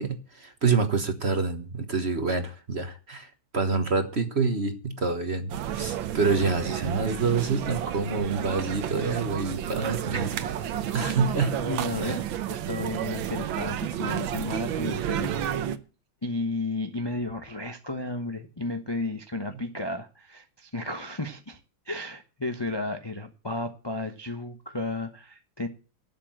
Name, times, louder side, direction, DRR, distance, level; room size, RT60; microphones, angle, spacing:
voice 1, 0.0-10.3 10.9-11.6 12.0-12.2, right 4 dB, 35° right, 1.4 m, -27 dB
sound 1, 5.5-15.8, right 10 dB, 80° right, 1.7 m, -31 dB
voice 2, 11.5-15.7 16.2-21.6 21.9-25.7, left 2 dB, 20° left, 0.8 m, -33 dB
12.0 x 7.6 x 7.7 m
omnidirectional pair, 2.1 m